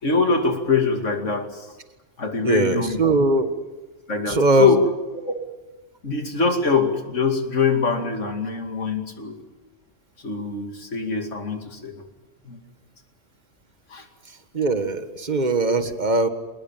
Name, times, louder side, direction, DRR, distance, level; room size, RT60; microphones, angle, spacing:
voice 1, 0.0-1.7 2.2-3.0 4.1-5.5 6.0-9.4 10.2-12.0 12.4-12.6 13.9-14.1, left 4 dB, 75° left, 5 dB, 2.8 m, -23 dB
voice 2, 2.4-3.5 4.3-4.8 14.5-16.3, right 2 dB, 35° right, 9 dB, 1.8 m, -20 dB
27.0 x 19.5 x 9.1 m, 1.1 s
omnidirectional pair, 1.3 m